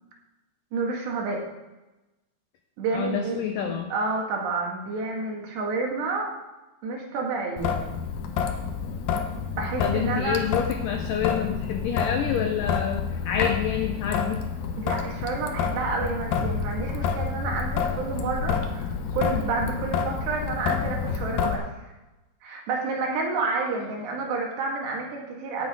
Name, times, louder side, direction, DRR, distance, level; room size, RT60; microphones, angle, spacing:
voice 1, 0.7-1.5 2.8-6.3 6.8-7.8 9.6-10.4 14.8-21.9 22.4-25.7, right 3 dB, 85° right, -1 dB, 4.1 m, -29 dB
voice 2, 2.9-3.9 9.8-14.4, left 8 dB, 90° left, 5 dB, 1.9 m, -28 dB
Traffic noise roadway noise / Drip / Trickle dribble, 7.6-21.6, left 6 dB, 70° left, 2.4 m, -28 dB
17.0 x 7.8 x 3.7 m, 1.0 s
omnidirectional pair, 4.8 m